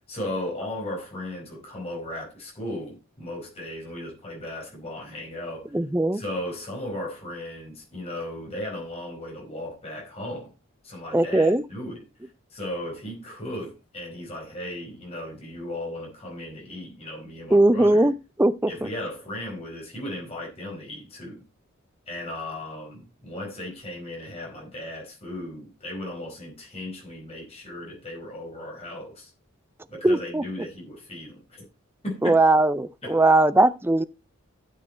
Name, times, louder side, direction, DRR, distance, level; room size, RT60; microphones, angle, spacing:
voice 1, 0.0-5.8 6.1-10.5 10.8-18.1 18.7-21.4 22.1-29.3 29.9-31.7 32.0-32.4 33.0-33.2, left 1 dB, 30° left, 4.8 m, -36 dB
voice 2, 5.7-6.2 11.1-11.6 17.5-18.1 18.4-18.5 30.0-30.4 32.2-34.0, right 2 dB, 10° right, 0.4 m, -19 dB
12.0 x 6.8 x 4.4 m
head